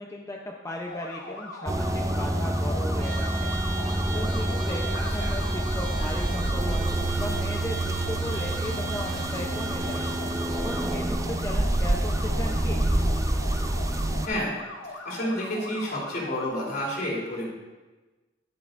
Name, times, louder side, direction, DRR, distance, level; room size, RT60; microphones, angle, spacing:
voice 1, 0.0-3.5 4.1-6.9 7.2-10.1 10.6-12.9, left 1 dB, 15° left, 0 dB, 0.7 m, -36 dB
sound 1, 0.8-16.4, left 2 dB, 70° left, 1.3 m, -40 dB
sound 2, 1.7-14.3, right 1 dB, 15° right, 0.5 m, -27 dB
Trumpet, 3.0-11.1, right 4 dB, 40° right, 2.1 m, -39 dB
voice 2, 4.9-5.3 14.2-14.5 14.8-17.5, equal, 55° left, -4 dB, 3.4 m, -30 dB
19.0 x 6.8 x 2.6 m, 1.2 s
head